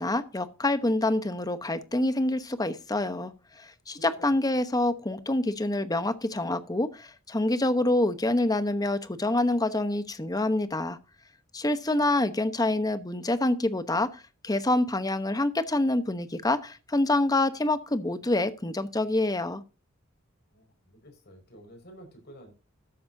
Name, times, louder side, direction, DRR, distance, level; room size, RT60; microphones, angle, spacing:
voice 1, 0.0-3.3 3.6-11.0 11.5-19.6, left 2 dB, 20° left, 0.9 m, -26 dB
voice 2, 4.0-4.3 20.5-22.5, right 1 dB, 55° left, 5.4 m, -50 dB
13.5 x 9.4 x 2.7 m
head